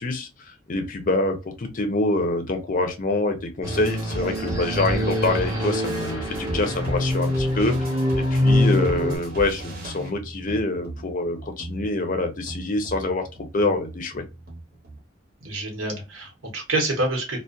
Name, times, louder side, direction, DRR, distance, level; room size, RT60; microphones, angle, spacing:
voice 1, 0.0-13.3 13.5-14.2, left 2 dB, 40° left, 0.5 m, -26 dB
sound 1, 3.6-9.2, left 1 dB, 15° right, 0.7 m, -24 dB
sound 2, 3.6-15.0, right 1 dB, 50° right, 0.8 m, -36 dB
voice 2, 15.4-17.4, right 2 dB, 85° right, 1.0 m, -27 dB
2.3 x 2.1 x 2.5 m
head